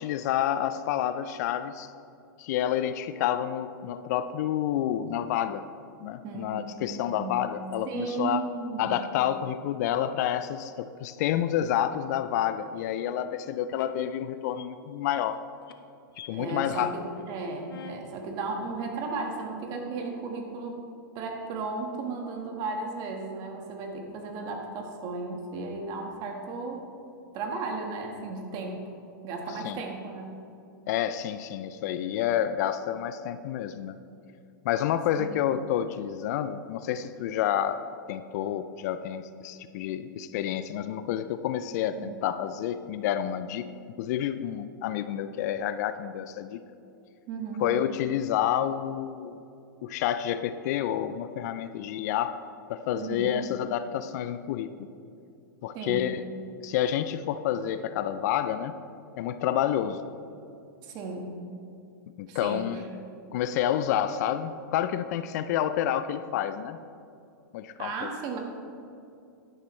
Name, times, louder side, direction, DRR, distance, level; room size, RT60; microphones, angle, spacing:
voice 1, 0.0-1.9 2.4-5.6 6.0-8.4 8.8-15.4 16.3-16.9 29.6-29.8 30.9-34.0 34.6-37.8 38.1-43.7 44.0-46.6 47.6-49.4 49.8-52.4 52.7-54.9 55.6-56.2 56.6-58.7 59.2-60.0 62.2-62.8 63.3-66.8 67.5-68.1, left 10 dB, 50° left, 12 dB, 0.4 m, -29 dB
voice 2, 6.2-7.5 7.9-9.0 16.3-20.8 21.1-26.8 27.3-28.9 29.2-30.4 35.2-35.3 42.0-42.1 47.3-47.7 52.9-53.5 55.7-56.1 60.8-61.3 62.3-62.8 67.8-68.4, right 3 dB, 35° right, 2 dB, 1.6 m, -35 dB
sound 1, 12.8-13.1 13.7-13.9 14.4-14.6 15.1-15.3 15.6-15.7 16.1-16.3 16.6-16.8 17.1-17.4 17.7-18.0 18.7-18.8 19.1-19.5, left 7 dB, 85° left, 0.8 m, -46 dB
11.5 x 10.5 x 3.2 m, 2.5 s
hypercardioid pair, 145°, 12 cm